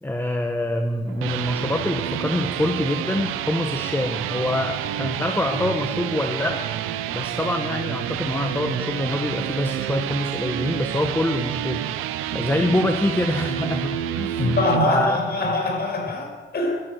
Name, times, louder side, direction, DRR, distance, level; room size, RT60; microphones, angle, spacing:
voice 1, 0.0-6.6 7.1-15.2, left 1 dB, 10° left, 5 dB, 1.3 m, -25 dB
sound 1, 0.9-14.9, right 11 dB, 90° right, 0.7 m, -29 dB
voice 2, 14.4-16.8, left 2 dB, 50° left, 1 dB, 5.0 m, -23 dB
12.5 x 12.0 x 6.3 m, 1.3 s
supercardioid pair, 55°, 21 cm